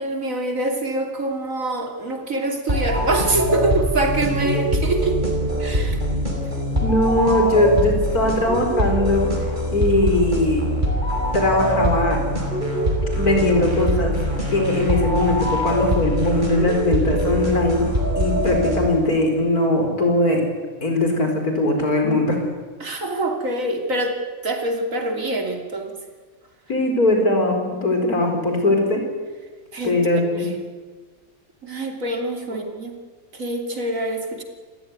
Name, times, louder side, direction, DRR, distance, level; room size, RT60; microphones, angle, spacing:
voice 1, 0.0-5.2 5.6-6.0 22.8-24.1 24.4-25.9 29.7-30.0 31.6-32.9 33.3-34.4, right 2 dB, 60° right, 3 dB, 3.4 m, -25 dB
sound 1, 2.7-19.2, equal, 30° right, 5.2 m, -23 dB
voice 2, 6.8-9.3 9.7-10.7 11.3-12.2 13.1-14.1 14.5-17.9 18.2-20.4 20.8-22.4 26.7-29.0 29.8-30.5, left 2 dB, 85° left, 3 dB, 5.2 m, -20 dB
28.0 x 16.0 x 9.7 m, 1.4 s
omnidirectional pair, 1.5 m